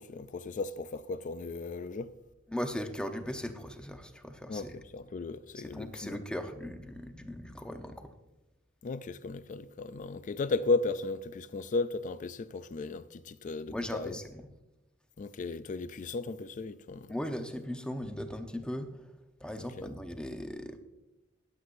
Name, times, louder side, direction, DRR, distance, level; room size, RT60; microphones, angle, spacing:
voice 1, 0.0-2.1 4.5-6.2 8.8-14.2 15.2-17.1 19.6-19.9, left 3 dB, 40° left, 0.4 m, -35 dB
voice 2, 2.5-4.7 5.5-8.1 13.7-14.5 17.1-19.1 19.4-20.8, equal, 5° left, 0.8 m, -38 dB
19.5 x 7.9 x 2.6 m
head